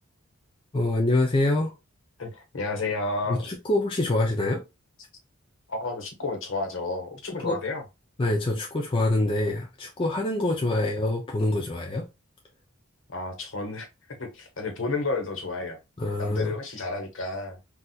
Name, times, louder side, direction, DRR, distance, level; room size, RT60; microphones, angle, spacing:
voice 1, 0.7-1.7 3.3-4.6 7.4-7.6 8.2-12.0 16.0-16.5, left 2 dB, 25° left, 0.4 m, -25 dB
voice 2, 2.2-3.4 5.7-7.8 13.1-13.9 14.2-15.8 16.2-17.6, left 3 dB, 60° left, 1.0 m, -31 dB
4.1 x 2.4 x 2.3 m
head